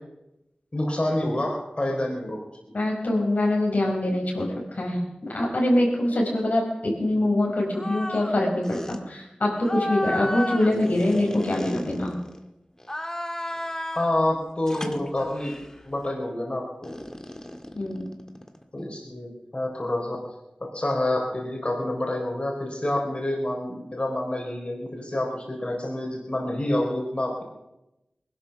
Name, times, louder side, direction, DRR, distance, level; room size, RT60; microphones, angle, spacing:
voice 1, 0.7-2.4 10.2-10.3 13.9-15.5 15.9-16.9 18.7-20.2 20.6-27.4, left 1 dB, 40° left, 0 dB, 4.1 m, -28 dB
voice 2, 2.7-12.2 17.7-18.1, left 1 dB, 70° left, -2 dB, 4.7 m, -24 dB
sound 1, 7.7-8.4 8.6-9.0 9.6-12.4 12.8-14.2 14.7-15.7 16.8-18.6, left 1 dB, 20° left, 1.7 m, -33 dB
19.5 x 12.5 x 5.9 m, 0.92 s
wide cardioid pair, 45°, 3 cm